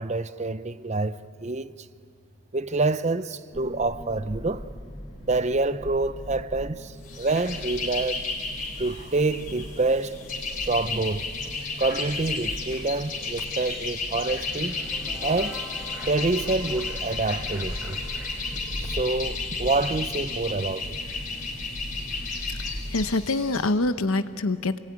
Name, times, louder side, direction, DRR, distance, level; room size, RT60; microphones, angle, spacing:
voice 1, 0.0-1.7 2.5-4.7 5.2-8.2 8.8-10.2 10.6-11.3 11.8-14.8 15.2-15.6 16.1-18.0 18.8-21.0, right 3 dB, 30° right, 0.6 m, -27 dB
sound 1, 3.5-23.1, equal, 20° left, 4.2 m, -39 dB
sound 2, 7.0-23.7, left 4 dB, 40° left, 4.2 m, -33 dB
sound 3, 14.3-20.4, left 1 dB, 5° right, 3.3 m, -45 dB
voice 2, 22.9-24.8, left 2 dB, 80° left, 1.0 m, -25 dB
28.0 x 20.5 x 9.5 m
head